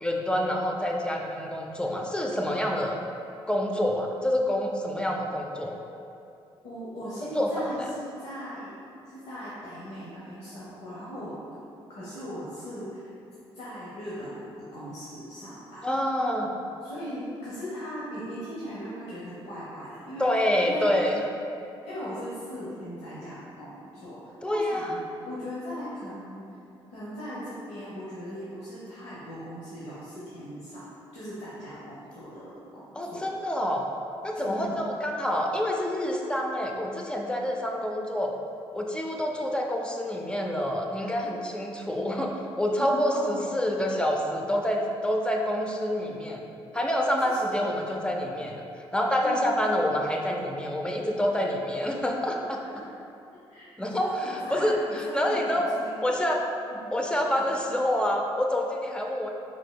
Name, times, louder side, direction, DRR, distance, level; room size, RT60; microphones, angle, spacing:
voice 1, 0.0-3.0 3.5-5.8 7.3-7.7 15.8-16.5 20.2-21.2 24.4-25.0 32.9-33.8 34.2-38.3 38.7-46.4 46.7-48.6 48.9-52.6 53.8-55.8 56.0-56.5 56.9-59.3, left 1 dB, 10° left, 1 dB, 0.5 m, -27 dB
voice 2, 6.6-8.7 9.1-11.4 11.9-13.1 13.5-15.9 16.8-20.3 20.6-20.9 21.8-26.4 26.9-33.3 34.3-34.8 41.0-41.1 42.8-43.5 47.2-47.5 49.2-49.5 52.8-52.9 53.5-55.9 56.7-56.8 57.4-57.5, equal, 80° left, -9 dB, 0.8 m, -39 dB
4.8 x 3.7 x 2.2 m, 2.6 s
supercardioid pair, 70°, 11 cm